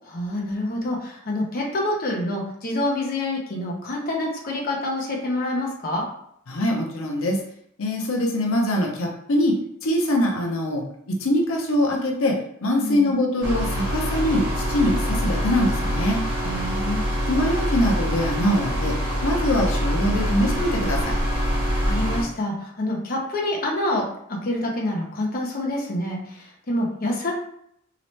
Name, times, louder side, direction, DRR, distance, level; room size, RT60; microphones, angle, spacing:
voice 1, 0.1-6.1 12.8-13.1 16.4-17.0 21.8-24.0 24.3-27.3, left 1 dB, 45° left, -2 dB, 0.7 m, -27 dB
voice 2, 6.5-7.4 7.8-9.6 9.8-16.2 17.3-19.0 19.2-21.2, left 1 dB, 80° left, 1 dB, 0.6 m, -23 dB
sound 1, 13.4-22.2, equal, 55° right, 1.2 m, -25 dB
3.0 x 2.9 x 3.1 m, 0.72 s
head